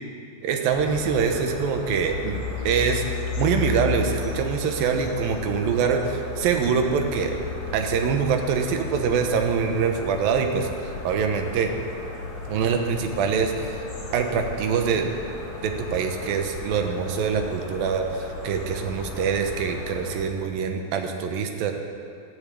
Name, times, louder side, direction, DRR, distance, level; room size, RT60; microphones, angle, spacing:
voice 1, 0.4-3.0 3.4-7.4 7.7-10.7 11.0-11.7 12.5-13.8 14.1-15.1 15.6-21.7, right 6 dB, 85° right, 4 dB, 2.8 m, -24 dB
sound 1, 0.7-20.2, left 4 dB, 85° left, 4.5 m, -34 dB
12.5 x 10.5 x 8.4 m, 2.3 s
omnidirectional pair, 4.0 m